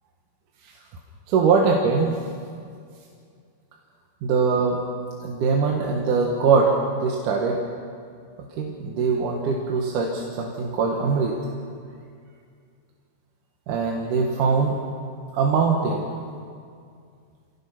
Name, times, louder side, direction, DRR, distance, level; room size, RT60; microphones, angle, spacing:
voice 1, 1.3-2.2 4.2-4.8 5.2-7.6 8.6-11.4 13.7-14.8 15.3-16.1, right 5 dB, 85° right, 0 dB, 2.9 m, -22 dB
26.5 x 17.5 x 5.9 m, 2.3 s
omnidirectional pair, 3.6 m